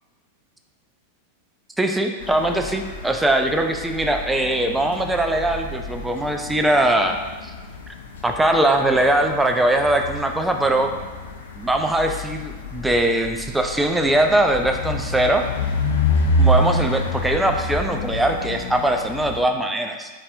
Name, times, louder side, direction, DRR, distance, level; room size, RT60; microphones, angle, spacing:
voice 1, 1.8-7.5 8.2-10.9 11.6-15.4 16.4-20.1, right 1 dB, 5° right, 4 dB, 0.3 m, -21 dB
sound 1, 2.2-19.4, left 1 dB, 60° left, 0.4 m, -28 dB
4.2 x 3.4 x 2.5 m, 1.3 s
figure-of-eight pair, 90°, 0 cm